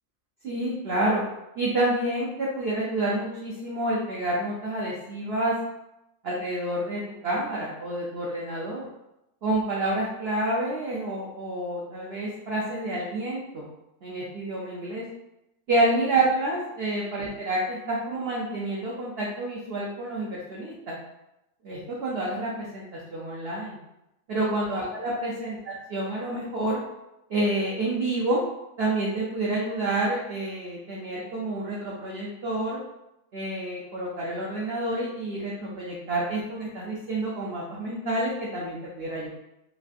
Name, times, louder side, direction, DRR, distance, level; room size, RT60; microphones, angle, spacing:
voice 1, 0.4-1.2 1.6-5.5 6.2-8.9 9.4-13.6 14.0-15.0 15.7-20.9 21.6-23.8 24.3-26.8 27.3-28.4 28.8-32.8 33.3-39.3, right 1 dB, 90° right, -4 dB, 0.5 m, -28 dB
3.1 x 2.5 x 2.4 m, 0.89 s
omnidirectional pair, 1.7 m